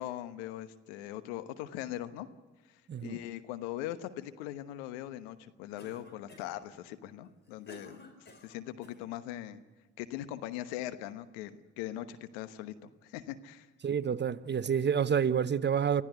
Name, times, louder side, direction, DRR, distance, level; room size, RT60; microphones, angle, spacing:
voice 1, 0.0-2.3 3.0-8.1 8.4-9.6 10.0-13.7, left 13 dB, 80° left, 1.2 m, -40 dB
voice 2, 2.9-3.2 13.8-16.0, right 7 dB, 30° right, 0.8 m, -28 dB
Cough, 5.8-6.7 7.2-9.0, left 1 dB, 30° left, 4.9 m, -53 dB
25.5 x 15.0 x 8.0 m
hypercardioid pair, 55°, 33 cm